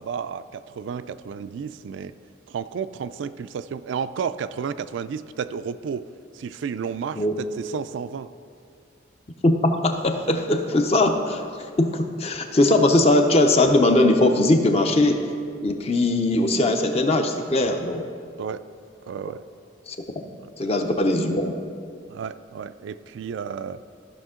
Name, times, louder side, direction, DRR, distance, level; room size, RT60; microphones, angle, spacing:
voice 1, 0.0-2.1 2.5-6.1 6.3-8.3 18.4-18.6 19.1-19.4 20.4-20.8 22.1-23.8, right 6 dB, 75° right, 13 dB, 0.3 m, -32 dB
voice 2, 9.4-11.4 11.8-15.2 15.6-18.0 19.9-20.0 20.6-21.5, left 2 dB, 30° left, 5 dB, 0.6 m, -20 dB
14.0 x 5.7 x 3.7 m, 2.3 s
head